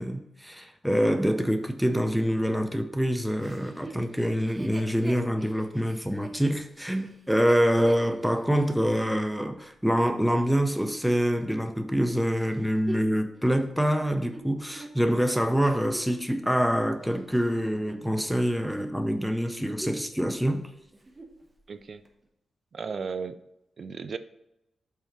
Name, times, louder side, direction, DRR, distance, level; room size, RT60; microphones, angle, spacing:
voice 1, 0.0-20.6, equal, ahead, 0.5 m, -26 dB
Chuckle chortle, 3.4-9.0 9.6-9.7 12.3-16.3 16.9-18.4 18.7-19.0 19.4-20.1 20.4-20.5 20.9-21.4 22.0-22.1, right 2 dB, 25° right, 1.0 m, -44 dB
voice 2, 21.7-22.0 22.7-23.4 23.8-24.2, right 5 dB, 55° right, 0.4 m, -35 dB
5.7 x 4.1 x 5.9 m
wide cardioid pair, 115°, 0 cm